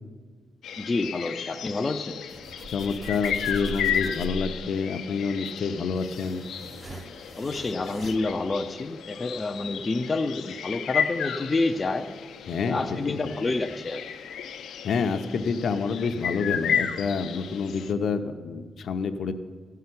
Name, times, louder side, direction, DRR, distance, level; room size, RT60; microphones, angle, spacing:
sound 1, 0.6-17.9, left 8 dB, 90° left, 0.8 m, -34 dB
voice 1, 0.8-2.2 7.4-12.1 12.6-14.0, left 3 dB, 20° left, 4 dB, 0.5 m, -28 dB
sound 2, 2.3-4.7 5.5-8.2, left 1 dB, 25° right, 0.8 m, -40 dB
voice 2, 2.7-6.4 12.5-13.4 14.8-19.3, left 5 dB, 55° left, 7 dB, 0.8 m, -28 dB
14.5 x 5.7 x 9.6 m, 1.5 s
wide cardioid pair, 165°, 0 cm